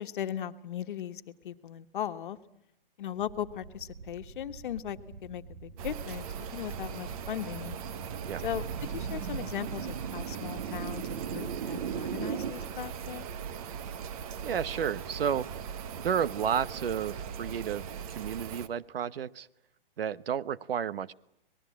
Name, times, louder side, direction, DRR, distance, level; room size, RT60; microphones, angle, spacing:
voice 1, 0.0-2.4 3.0-7.8 8.4-8.6 8.9-13.2, left 10 dB, 60° left, 9 dB, 1.4 m, -38 dB
sound 1, 3.2-12.5, right 7 dB, 55° right, 1.8 m, -40 dB
sound 2, 5.8-18.7, right 7 dB, 40° right, 1.3 m, -39 dB
voice 2, 14.4-15.5 16.0-19.5 20.0-21.1, right 8 dB, 80° right, 19 dB, 1.0 m, -32 dB
25.5 x 19.5 x 8.6 m, 0.83 s
hypercardioid pair, 150°, 29 cm